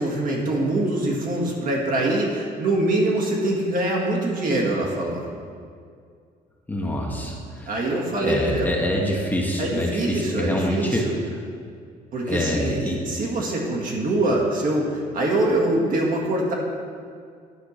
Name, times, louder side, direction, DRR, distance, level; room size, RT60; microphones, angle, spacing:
voice 1, 0.0-5.3 7.7-8.7 9.6-11.1 12.1-16.5, right 1 dB, 55° right, -2 dB, 1.9 m, -24 dB
voice 2, 6.7-7.7 8.2-11.0 12.3-13.1, left 1 dB, 10° left, -2 dB, 1.3 m, -25 dB
10.5 x 4.6 x 6.6 m, 2.2 s
cardioid pair, 110°, 17 cm